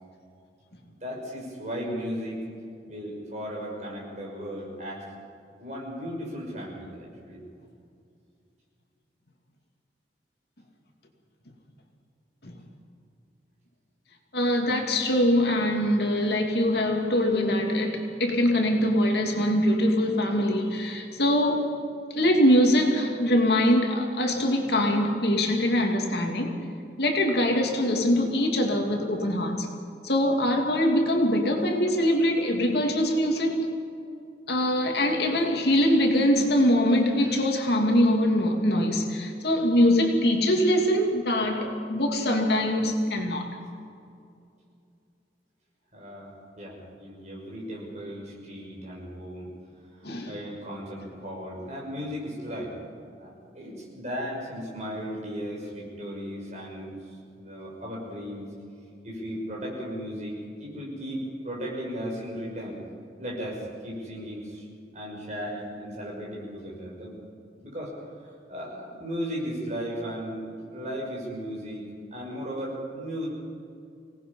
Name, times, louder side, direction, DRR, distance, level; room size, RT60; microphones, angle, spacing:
voice 1, 0.8-2.4 2.8-5.1 5.6-7.4 45.9-49.5 50.0-52.8 53.0-57.0 57.4-58.4 59.0-62.8 63.2-64.7 64.9-67.2 67.6-67.9 68.2-70.4 70.7-73.3, equal, 40° right, -2 dB, 6.1 m, -36 dB
voice 2, 14.3-21.7 22.1-26.6 27.0-29.7 30.0-33.7 34.5-43.5 50.0-50.3, left 1 dB, 65° left, 2 dB, 2.6 m, -23 dB
25.5 x 18.5 x 5.6 m, 2.4 s
head